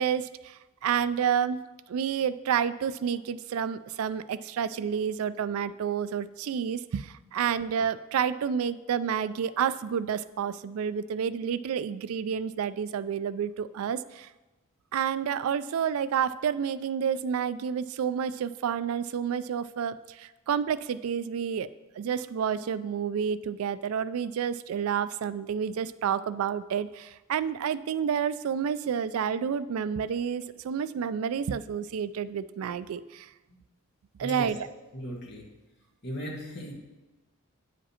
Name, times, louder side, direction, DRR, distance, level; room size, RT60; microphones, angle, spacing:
voice 1, 0.0-1.6 1.9-14.3 14.9-21.7 22.0-33.3 34.2-34.6, right 7 dB, 85° right, 15 dB, 0.3 m, -29 dB
voice 2, 34.2-35.4 36.0-36.7, equal, 50° left, -4 dB, 1.7 m, -37 dB
8.8 x 5.1 x 4.3 m, 1.1 s
head